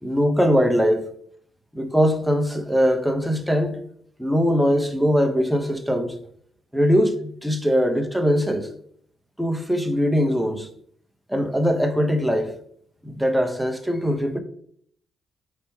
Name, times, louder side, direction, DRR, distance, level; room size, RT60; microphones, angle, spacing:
voice 1, 0.0-1.1 1.7-3.8 4.2-6.2 6.7-8.7 9.4-10.7 11.3-12.6 13.0-14.4, equal, ahead, 0.6 m, -21 dB
4.2 x 3.3 x 3.0 m
cardioid pair, 90°, 0 cm